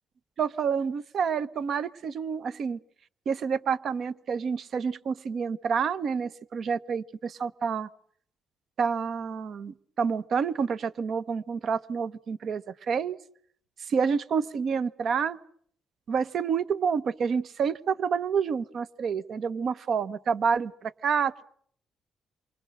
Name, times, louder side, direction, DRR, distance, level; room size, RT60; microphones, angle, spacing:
voice 1, 0.4-2.8 3.3-7.9 8.8-13.2 13.8-15.4 16.1-21.4, right 6 dB, 60° right, 16 dB, 1.0 m, -28 dB
27.5 x 24.5 x 6.6 m, 0.63 s
cardioid pair, 90°, 0 cm